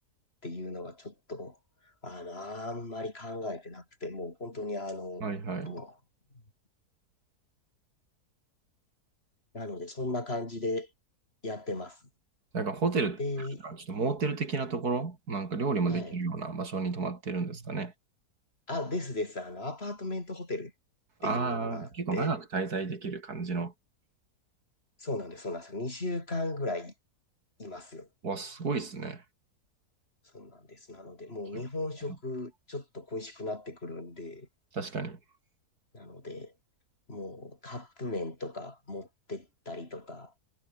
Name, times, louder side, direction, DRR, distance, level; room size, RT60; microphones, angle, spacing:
voice 1, 0.4-1.6 2.0-5.2 5.6-6.0 9.5-10.9 11.4-12.0 13.2-13.6 15.9-16.2 18.7-20.7 21.2-22.3 25.0-26.9 27.6-28.1 30.3-34.5 35.9-36.5 37.1-40.3, left 2 dB, 40° left, 4.7 m, -37 dB
voice 2, 5.2-5.8 12.5-13.2 13.6-17.9 21.2-23.7 28.2-29.2 34.7-35.2, right 4 dB, 70° right, 3.5 m, -31 dB
omnidirectional pair, 1.7 m